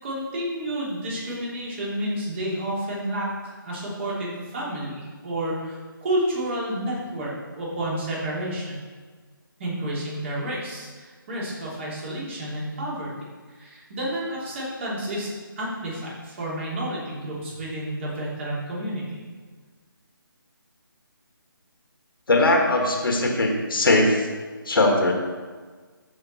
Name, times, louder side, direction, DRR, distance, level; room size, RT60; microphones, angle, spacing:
voice 1, 0.0-8.8 9.6-13.1 13.5-19.2, right 1 dB, 35° right, -6 dB, 3.2 m, -30 dB
voice 2, 22.3-24.3 24.7-25.1, left 2 dB, 70° left, 2 dB, 1.9 m, -20 dB
14.0 x 5.1 x 4.3 m, 1.5 s
figure-of-eight pair, 155°, 12 cm